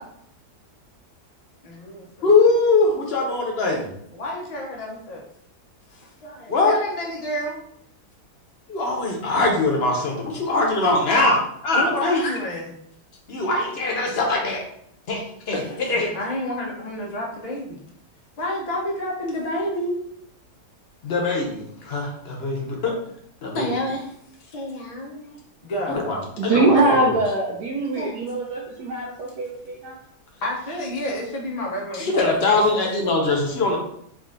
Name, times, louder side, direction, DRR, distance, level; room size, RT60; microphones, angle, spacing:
voice 1, 1.6-2.3 4.1-5.2 5.9-7.6 11.8-12.7 15.5-17.8 18.4-20.0 23.4-24.1 24.4-26.0 26.8-27.0 28.0-28.2 30.4-33.0, left 1 dB, 70° left, -2 dB, 0.3 m, -30 dB
voice 2, 2.2-3.9 6.5-6.8 8.7-12.3 13.3-14.6 15.1-15.6 15.9-16.1 21.0-22.9 23.4-23.7 25.9-26.2 26.4-27.1 31.9-33.8, left 3 dB, 50° left, 1 dB, 0.8 m, -22 dB
voice 3, 26.4-30.0, right 2 dB, 80° right, -3 dB, 1.2 m, -22 dB
3.7 x 2.5 x 3.7 m, 0.69 s
omnidirectional pair, 1.8 m